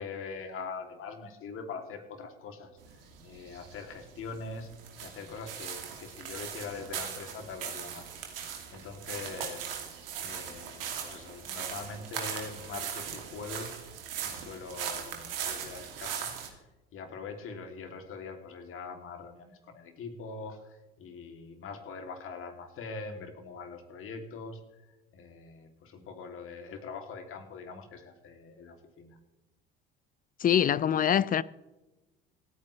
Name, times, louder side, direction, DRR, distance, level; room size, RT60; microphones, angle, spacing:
voice 1, 0.0-2.7 3.2-4.7 5.0-8.1 8.4-9.7 10.2-13.7 14.2-16.3 16.9-24.6 25.1-29.2, left 4 dB, 45° left, 3.0 m, -43 dB
sound 1, 2.8-16.5, right 8 dB, 75° right, 2.8 m, -39 dB
voice 2, 30.4-31.4, left 9 dB, 30° left, 0.6 m, -24 dB
27.0 x 9.5 x 3.3 m
figure-of-eight pair, 60°, 29 cm